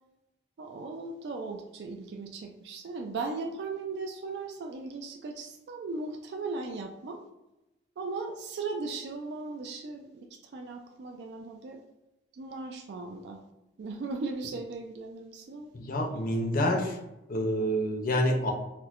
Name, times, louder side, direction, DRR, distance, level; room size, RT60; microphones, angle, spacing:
voice 1, 0.6-7.2 8.0-11.8 12.3-13.4 13.8-15.7, right 3 dB, 65° right, 3 dB, 0.3 m, -37 dB
voice 2, 15.7-17.0 17.3-18.5, equal, 50° left, 3 dB, 0.6 m, -27 dB
4.3 x 2.0 x 2.4 m, 0.96 s
head